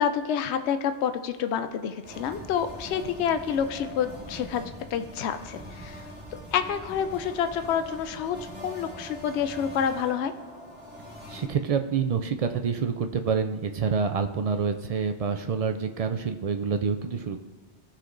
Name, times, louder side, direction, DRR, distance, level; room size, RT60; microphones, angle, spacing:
voice 1, 0.0-4.6 4.9-6.1 6.5-10.3, left 8 dB, 75° left, 9 dB, 0.8 m, -28 dB
sound 1, 2.0-11.4, equal, 10° right, 1.4 m, -42 dB
voice 2, 11.3-17.4, right 6 dB, 60° right, 7 dB, 0.3 m, -27 dB
16.0 x 5.8 x 2.6 m, 1.4 s
omnidirectional pair, 1.2 m